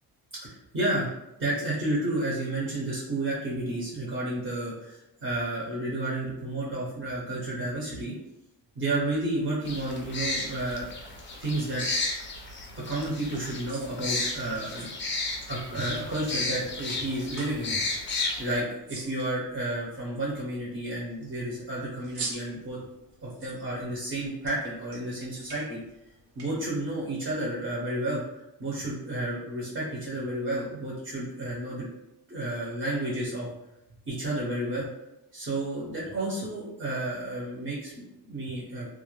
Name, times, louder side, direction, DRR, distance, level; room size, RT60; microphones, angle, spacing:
voice 1, 0.4-8.1 8.8-10.9 11.4-11.8 12.9-14.9 15.5-17.8 18.4-22.8 23.2-25.8 26.4-28.2 28.6-31.9 32.3-33.5 34.1-34.9 35.3-38.9, right 1 dB, 30° right, -6 dB, 0.7 m, -31 dB
sound 1, 9.7-18.6, left 3 dB, 30° left, 0.4 m, -33 dB
sound 2, 13.1-26.4, right 3 dB, 65° right, 0.8 m, -47 dB
2.4 x 2.0 x 3.0 m, 0.89 s
cardioid pair, 125°, 42 cm